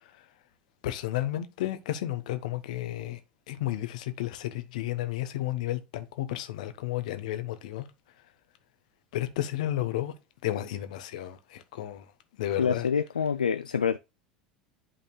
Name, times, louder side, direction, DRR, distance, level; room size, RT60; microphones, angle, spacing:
voice 1, 0.8-3.2 3.5-7.9 9.1-10.1 10.4-12.1 12.4-12.9, left 13 dB, 65° left, 1.1 m, -32 dB
voice 2, 12.6-14.0, left 6 dB, 80° left, 0.3 m, -26 dB
11.5 x 4.2 x 2.2 m
figure-of-eight pair, 75°, 4 cm